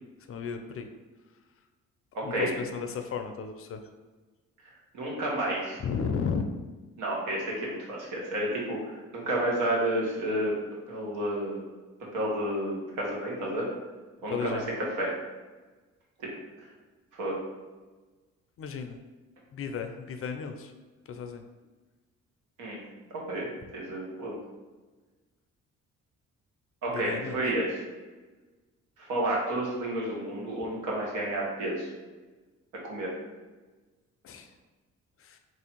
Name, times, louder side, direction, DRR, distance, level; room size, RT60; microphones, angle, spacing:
voice 1, 0.3-0.9 2.2-3.8 5.8-6.5 14.3-14.7 18.6-19.0 19.5-20.7 21.1-21.4 26.9-27.4 34.2-34.5 35.2-35.4, left 6 dB, 50° left, 6 dB, 0.5 m, -34 dB
voice 2, 2.1-2.5 4.9-5.8 7.0-10.5 10.9-11.6 12.1-13.7 14.2-15.1 16.2-16.3 17.2-17.4 22.6-22.8 23.3-24.4 26.8-27.8 29.0-31.9 32.8-33.1, right 1 dB, 85° right, -3 dB, 1.2 m, -30 dB
3.2 x 2.6 x 4.3 m, 1.3 s
cardioid pair, 90°, 30 cm